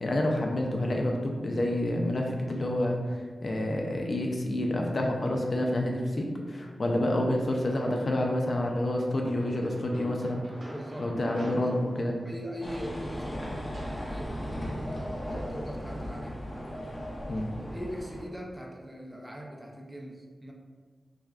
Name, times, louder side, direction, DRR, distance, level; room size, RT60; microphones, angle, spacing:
voice 1, 0.0-10.4 11.0-12.2 17.3-17.5, left 1 dB, 55° left, 0 dB, 0.5 m, -28 dB
sound 1, 7.6-8.2 9.0-14.1, equal, 65° right, 1.4 m, -47 dB
voice 2, 10.7-11.1 11.5-11.8 12.2-14.5 15.3-16.4 17.5-20.5, equal, 10° right, -1 dB, 0.6 m, -41 dB
sound 2, 12.6-18.2, equal, 35° left, 0.8 m, -36 dB
5.8 x 2.2 x 2.4 m, 1.5 s
wide cardioid pair, 75°, 0 cm